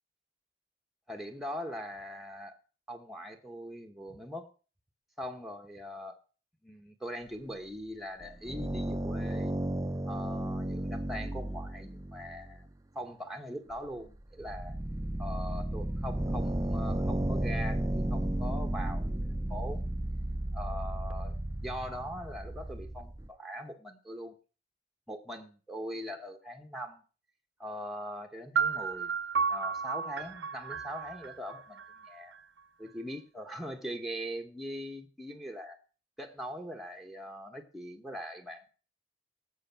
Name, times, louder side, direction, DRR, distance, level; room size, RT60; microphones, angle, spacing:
voice 1, 1.1-2.6 2.9-4.5 5.2-6.2 6.6-9.5 10.0-12.7 12.9-14.8 15.2-19.1 19.5-19.8 20.5-21.4 21.6-24.3 25.1-27.0 27.6-29.1 29.5-32.3 32.8-35.7 36.2-38.7, equal, ahead, 2 dB, 1.2 m, -41 dB
sound 1, 8.2-12.7 13.7-13.8 14.2-23.3, right 1 dB, 20° right, 0.6 m, -33 dB
sound 2, 28.5-32.4, right 6 dB, 90° right, 0.7 m, -33 dB
18.0 x 7.1 x 5.9 m, 0.38 s
head